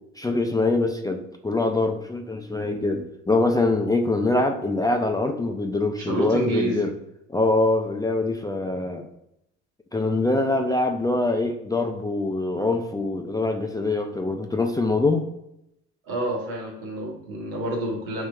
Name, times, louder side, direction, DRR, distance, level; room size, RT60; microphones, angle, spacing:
voice 1, 0.2-6.9 7.3-9.1 9.9-15.3, left 2 dB, 10° left, 4 dB, 0.4 m, -24 dB
voice 2, 6.0-6.8 16.1-18.3, right 1 dB, 80° right, 0 dB, 1.2 m, -28 dB
5.2 x 3.1 x 2.3 m, 0.80 s
hypercardioid pair, 65°, 35 cm